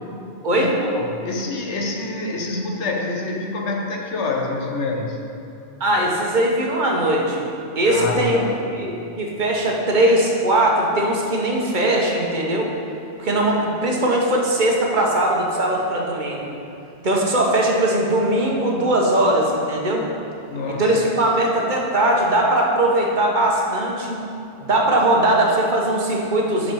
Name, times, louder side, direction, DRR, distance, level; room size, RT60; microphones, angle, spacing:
voice 1, 0.4-5.2 7.8-8.6 20.5-20.9, left 3 dB, 90° left, 1 dB, 1.2 m, -26 dB
voice 2, 5.8-7.5 7.8-8.4 8.7-12.7 13.2-16.5 17.0-20.1 20.7-24.2 24.6-26.7, right 1 dB, 50° right, -1 dB, 1.0 m, -20 dB
5.6 x 5.5 x 6.2 m, 2.7 s
omnidirectional pair, 1.1 m